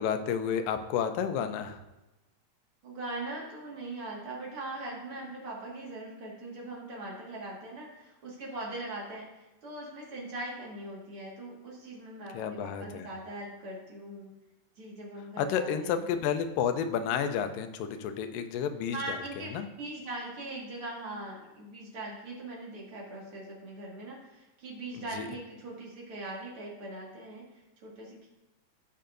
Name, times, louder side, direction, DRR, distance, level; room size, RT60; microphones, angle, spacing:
voice 1, 0.0-1.8 12.3-13.1 15.4-19.0 19.5-19.7 25.1-25.3, left 8 dB, 90° left, 8 dB, 2.4 m, -31 dB
voice 2, 2.8-14.3 14.8-16.0 18.9-28.3, right 2 dB, 45° right, -3 dB, 2.4 m, -41 dB
15.5 x 5.6 x 2.6 m, 1.0 s
omnidirectional pair, 3.8 m